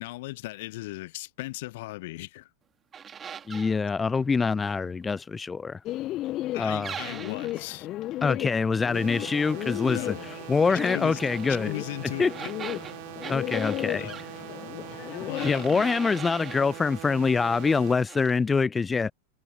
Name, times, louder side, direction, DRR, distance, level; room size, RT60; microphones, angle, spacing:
voice 1, 0.0-2.5 6.5-7.9 9.8-10.3 10.7-11.2 11.6-12.3 14.0-14.2 15.3-15.9, left 19 dB, 50° left, 0.8 m, -37 dB
sound 1, 2.9-3.8 6.8-7.6 10.7-11.6 12.3-14.3 15.3-16.7 17.2-17.8 18.1-18.4, right 7 dB, 20° right, 3.6 m, -40 dB
voice 2, 3.5-5.8 6.6-6.9 8.2-11.7 12.2-12.3 13.3-14.1 15.4-19.1, left 4 dB, 15° left, 0.4 m, -25 dB
Bird, 5.9-15.5, left 15 dB, 35° left, 1.8 m, -35 dB
sound 2, 8.9-17.9, right 31 dB, 50° right, 5.9 m, -42 dB
figure-of-eight pair, 90°, 0 cm